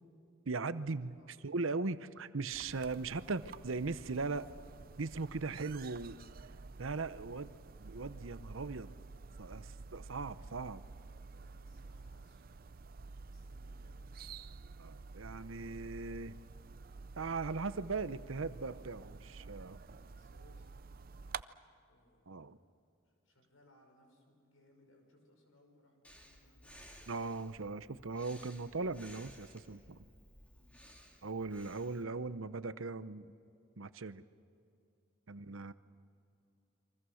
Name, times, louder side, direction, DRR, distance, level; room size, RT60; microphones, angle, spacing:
voice 1, 0.5-4.5 5.0-6.2 6.8-7.5 7.8-8.9 9.4-10.8 14.8-16.4 17.2-19.8 22.3-22.6 27.1-30.0 31.2-33.3 33.8-34.2 35.3-35.7, right 3 dB, 75° right, 13 dB, 0.8 m, -39 dB
voice 2, 1.1-1.6 11.4-12.8 13.2-14.2 20.1-22.6 23.0-26.9 30.5-31.2 35.3-35.7, left 1 dB, 85° left, 3 dB, 6.1 m, -69 dB
sound 1, 2.5-21.4, right 4 dB, 45° right, 0.5 m, -50 dB
Breathing, 26.0-32.0, equal, 5° left, 2.5 m, -58 dB
30.0 x 24.0 x 6.4 m, 2.5 s
head